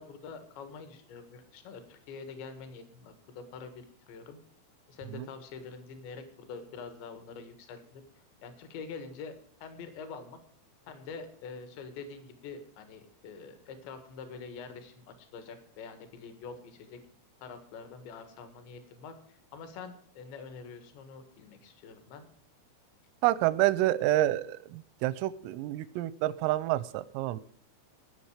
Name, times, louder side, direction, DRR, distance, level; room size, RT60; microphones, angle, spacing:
voice 1, 0.0-4.4 4.9-8.0 8.4-9.4 9.6-10.4 10.9-17.0 17.4-22.2, left 5 dB, 65° left, 8 dB, 3.7 m, -45 dB
voice 2, 23.2-27.4, right 15 dB, 90° right, 18 dB, 3.3 m, -28 dB
19.0 x 6.7 x 4.9 m, 0.62 s
omnidirectional pair, 5.8 m